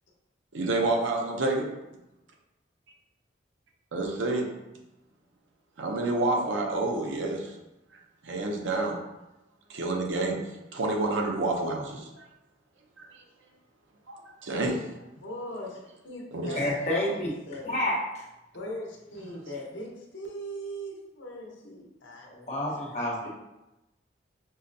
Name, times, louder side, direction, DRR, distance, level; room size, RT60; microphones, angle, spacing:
voice 1, 0.5-1.7 3.9-4.5 5.8-7.5 8.2-9.0 9.7-10.4 10.7-12.2 13.0-13.1 14.1-14.8 16.3-16.7, right 2 dB, 75° right, 1 dB, 0.6 m, -28 dB
voice 2, 15.2-17.0 17.5-17.7 18.5-22.3, equal, 80° left, -2 dB, 0.8 m, -39 dB
voice 3, 16.6-17.3 17.7-18.0 22.3-23.3, left 1 dB, 35° left, -5 dB, 1.0 m, -29 dB
5.5 x 2.1 x 2.6 m, 0.96 s
head